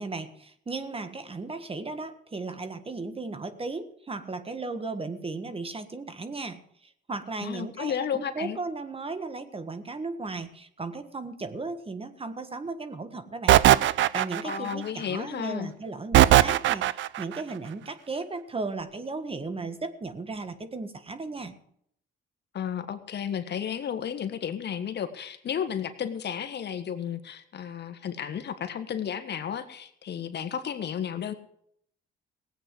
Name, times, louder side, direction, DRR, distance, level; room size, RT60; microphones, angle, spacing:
voice 1, 0.0-13.6 13.9-21.5, right 3 dB, 30° right, 10 dB, 1.6 m, -36 dB
voice 2, 7.4-8.6 14.4-15.7 22.5-31.3, left 8 dB, 60° left, 9 dB, 1.6 m, -33 dB
sound 1, 13.5-14.7 16.1-17.2, right 13 dB, 75° right, 0.6 m, -18 dB
17.0 x 8.5 x 7.8 m, 0.69 s
cardioid pair, 90°, 20 cm